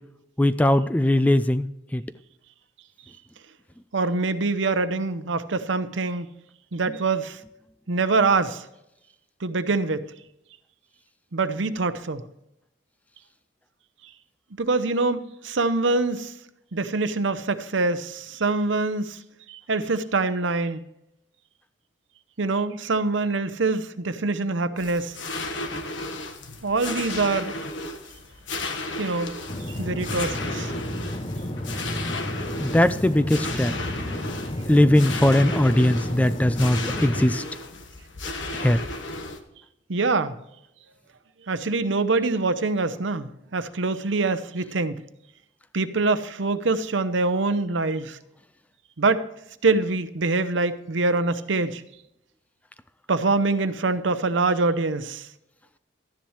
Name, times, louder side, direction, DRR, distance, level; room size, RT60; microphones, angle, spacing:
voice 1, 0.4-2.0 32.6-33.7 34.7-37.4 38.5-38.8, left 1 dB, 10° left, 13 dB, 0.3 m, -20 dB
voice 2, 3.9-6.3 6.7-7.4 7.9-8.6 9.4-10.1 11.3-12.2 14.6-16.3 16.7-19.2 19.5-20.8 22.4-25.1 26.6-27.5 29.0-29.3 29.7-30.7 39.9-40.3 41.5-45.0 45.7-48.2 49.0-49.2 49.6-51.8 53.1-55.3, right 3 dB, 75° right, 12 dB, 0.8 m, -24 dB
sound 1, 24.8-39.4, left 2 dB, 75° left, 1.4 m, -34 dB
sound 2, 29.5-37.3, left 1 dB, 30° left, 0.8 m, -32 dB
13.0 x 10.0 x 3.2 m, 0.85 s
head